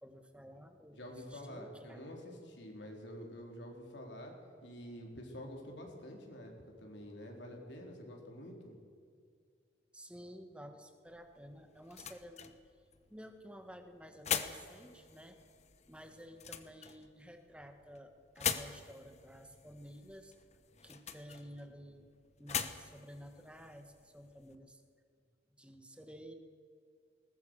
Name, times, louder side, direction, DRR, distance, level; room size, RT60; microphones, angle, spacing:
voice 1, 0.0-2.0 9.9-12.6 13.1-15.4 15.9-20.3 20.8-22.1 22.4-24.8 25.5-26.3, equal, 5° right, 6 dB, 1.7 m, -52 dB
voice 2, 0.9-4.3 4.6-8.7, equal, 70° left, 1 dB, 4.2 m, -48 dB
sound 1, 11.1-24.6, left 8 dB, 35° left, 1.1 m, -44 dB
21.0 x 19.5 x 6.5 m, 2.3 s
head